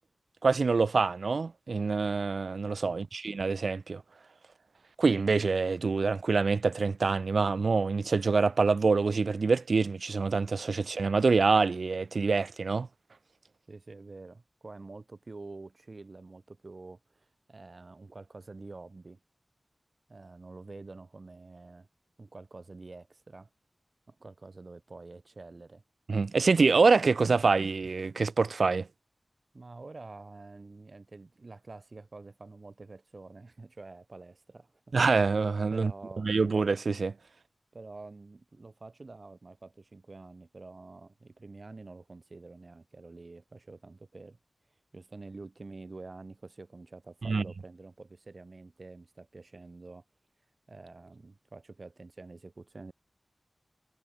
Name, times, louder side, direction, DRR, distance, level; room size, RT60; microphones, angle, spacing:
voice 1, 0.4-4.0 5.0-12.9 26.1-28.9 34.9-35.9 36.2-37.1 47.3-47.4, right 4 dB, 80° right, 0.4 m, -26 dB
voice 2, 13.7-19.2 20.1-21.9 22.2-23.5 24.1-25.8 29.5-35.0 35.7-36.3 37.7-44.4 44.9-50.0 50.7-52.9, right 3 dB, 55° right, 3.2 m, -48 dB
wide cardioid pair, 55°, 0 cm